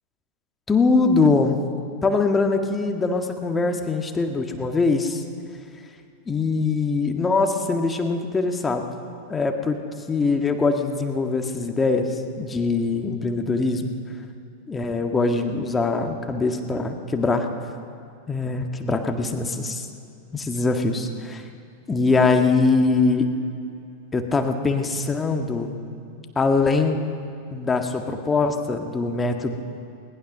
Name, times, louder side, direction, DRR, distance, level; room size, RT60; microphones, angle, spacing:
voice 1, 0.7-1.6 2.0-5.2 6.3-8.8 9.3-9.8 10.1-13.9 14.7-17.5 18.3-19.9 20.3-21.4 21.9-23.3 24.1-25.8 26.4-27.0 27.5-29.5, left 3 dB, 15° left, 5 dB, 1.8 m, -22 dB
20.5 x 19.0 x 6.7 m, 2.5 s
figure-of-eight pair, 90°, 0 cm